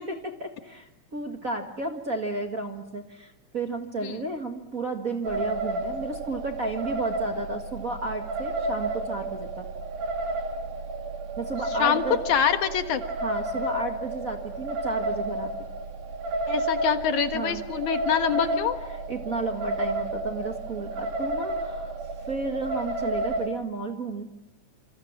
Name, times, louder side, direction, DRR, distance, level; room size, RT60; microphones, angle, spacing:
voice 1, 0.4-9.7 11.4-12.2 13.2-15.5 17.3-17.6 18.3-22.0 22.2-24.2, right 3 dB, 30° right, 4 dB, 1.8 m, -33 dB
sound 1, 5.2-23.5, right 2 dB, 80° right, 3.6 m, -31 dB
voice 2, 12.3-13.0 16.5-18.8, left 8 dB, 70° left, 8 dB, 2.8 m, -25 dB
28.0 x 27.5 x 7.4 m, 0.85 s
omnidirectional pair, 3.6 m